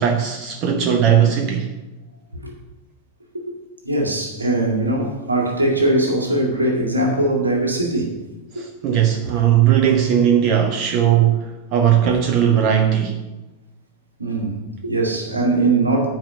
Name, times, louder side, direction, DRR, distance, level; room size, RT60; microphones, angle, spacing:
voice 1, 0.0-1.7 8.5-13.2, right 9 dB, 40° right, 0.9 m, -18 dB
voice 2, 3.3-8.1 8.5-8.6 14.2-16.1, right 2 dB, 80° right, 2.1 m, -21 dB
9.1 x 5.0 x 7.6 m
figure-of-eight pair, 90°, 0 cm